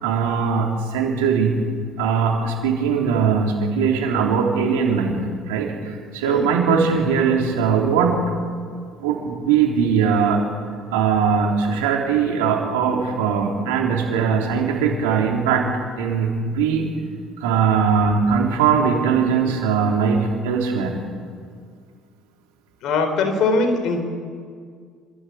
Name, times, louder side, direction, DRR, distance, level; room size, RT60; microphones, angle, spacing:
voice 1, 0.0-1.6 2.0-8.2 9.0-10.5 10.9-15.7 16.0-16.9 17.4-21.0, right 6 dB, 85° right, 1 dB, 3.6 m, -20 dB
voice 2, 22.8-24.1, left 3 dB, 65° left, 7 dB, 3.7 m, -21 dB
26.5 x 13.5 x 8.2 m, 2.1 s
hypercardioid pair, 65°, 0 cm